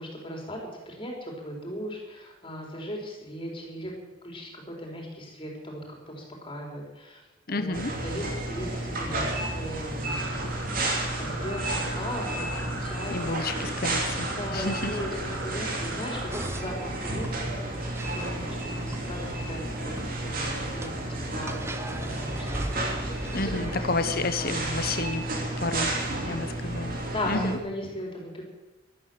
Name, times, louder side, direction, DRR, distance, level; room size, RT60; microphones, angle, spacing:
voice 1, 0.0-3.9 4.2-7.2 7.5-10.5 10.8-13.2 14.3-19.9 20.2-22.7 23.3-23.9 24.4-24.9 25.6-26.8 27.1-28.4, equal, 25° left, 0 dB, 4.1 m, -38 dB
voice 2, 7.5-7.9 13.1-14.9 23.3-25.2 25.6-25.9 26.3-27.0 27.3-27.6, left 2 dB, 50° left, 10 dB, 1.2 m, -30 dB
sound 1, 7.7-27.6, right 1 dB, 45° right, 2.9 m, -32 dB
sound 2, 10.0-16.5, right 1 dB, 75° right, 4.1 m, -40 dB
sound 3, 16.3-23.8, right 1 dB, 15° right, 0.8 m, -39 dB
13.0 x 13.0 x 7.8 m, 1.1 s
head